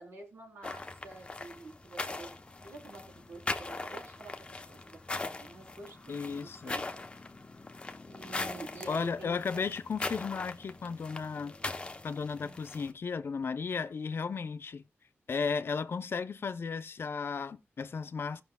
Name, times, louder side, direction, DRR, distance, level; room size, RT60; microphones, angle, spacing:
voice 1, 0.0-2.3 2.6-6.9 8.0-9.7 12.4-12.6, right 2 dB, 85° right, 3.6 m, -48 dB
sound 1, 0.6-12.9, left 3 dB, 25° left, 0.8 m, -41 dB
voice 2, 6.1-6.9 8.9-11.5 12.0-14.8 15.3-18.4, left 5 dB, 60° left, 0.6 m, -35 dB
17.5 x 6.1 x 2.3 m
wide cardioid pair, 150°, 4 cm